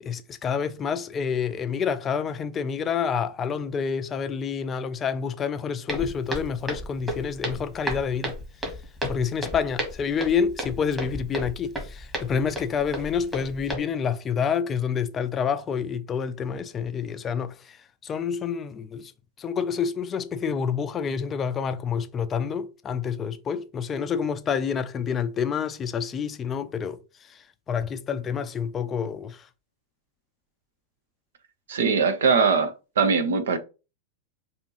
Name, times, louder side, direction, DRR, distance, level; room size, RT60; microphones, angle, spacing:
voice 1, 0.0-8.4 9.1-17.8 18.0-19.1 19.4-27.0 27.3-27.4 27.7-29.5, left 6 dB, 25° left, 0.4 m, -28 dB
Walk footsteps, 5.9-13.7, equal, 10° right, 1.6 m, -33 dB
voice 2, 31.7-33.6, right 5 dB, 65° right, 0.7 m, -21 dB
5.1 x 2.7 x 3.1 m
figure-of-eight pair, 90°, 0 cm